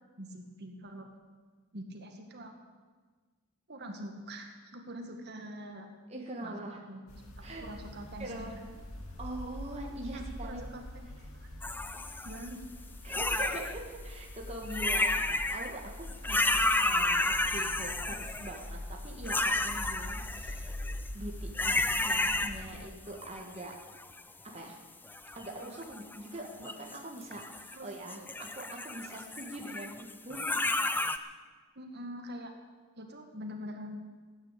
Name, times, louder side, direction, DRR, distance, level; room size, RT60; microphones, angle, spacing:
voice 1, 0.2-1.1 1.7-2.5 3.7-5.9 6.4-7.0 7.4-8.5 10.1-10.8 11.4-11.5 12.2-12.6 27.7-28.3 31.8-32.5 33.0-34.0, equal, 50° right, 3 dB, 1.8 m, -44 dB
voice 2, 6.1-6.8 7.4-7.7 8.2-8.6 9.2-10.6 13.0-20.8 21.1-23.7 24.5-24.8 25.3-30.6, right 1 dB, 30° right, 0 dB, 1.7 m, -43 dB
sound 1, 7.1-22.7, left 1 dB, 75° left, 2.5 m, -44 dB
sound 2, 11.6-12.5 13.1-13.8 14.6-15.7 16.1-18.7 19.2-21.1 21.5-22.8 23.2-24.2 25.1-26.2 26.6-27.8 28.1-31.2, left 2 dB, 10° left, 0.5 m, -31 dB
15.5 x 9.9 x 8.3 m, 1.4 s
head